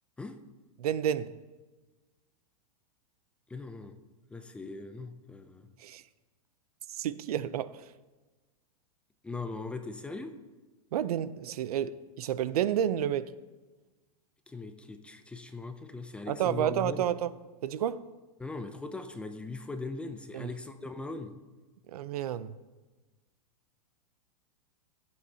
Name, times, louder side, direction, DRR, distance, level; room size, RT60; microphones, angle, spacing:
voice 1, 0.8-1.3 5.8-6.0 6.9-7.8 10.9-13.3 16.3-17.3 17.6-18.1 20.3-20.5 21.9-22.5, right 10 dB, 80° right, 0.5 m, -30 dB
voice 2, 3.5-4.0 4.3-5.7 9.2-10.3 14.5-17.0 18.4-21.3, left 3 dB, 5° left, 0.4 m, -40 dB
15.0 x 7.8 x 2.8 m
supercardioid pair, 150°, 19 cm